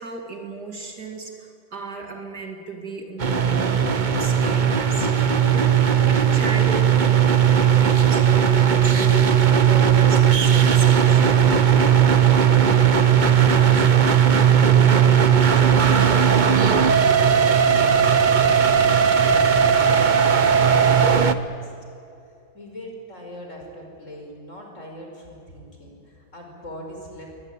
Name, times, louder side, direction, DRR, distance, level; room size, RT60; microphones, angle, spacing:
voice 1, 0.0-11.4, right 2 dB, 50° right, 3 dB, 2.5 m, -35 dB
sound 1, 3.2-21.3, right 8 dB, 80° right, 0.4 m, -17 dB
voice 2, 12.3-16.4 16.8-21.7 22.2-27.3, left 1 dB, 35° left, 1 dB, 5.5 m, -40 dB
22.5 x 20.0 x 8.9 m, 2.8 s
omnidirectional pair, 2.3 m